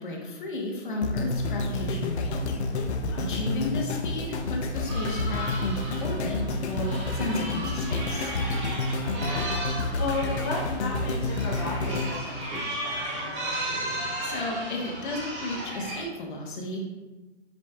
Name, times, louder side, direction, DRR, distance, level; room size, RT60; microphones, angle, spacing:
voice 1, 0.0-2.4 3.2-6.4 6.7-8.3 14.2-16.8, left 2 dB, 45° left, 0 dB, 1.2 m, -33 dB
sound 1, 1.0-13.2 13.8-13.9, left 2 dB, 70° left, 0.8 m, -30 dB
voice 2, 3.1-3.5 9.0-13.4, left 2 dB, 20° left, -7 dB, 0.6 m, -35 dB
sound 2, 4.8-16.0, right 1 dB, 25° right, 1.3 m, -35 dB
7.7 x 5.1 x 2.4 m, 1.2 s
hypercardioid pair, 175°, 35 cm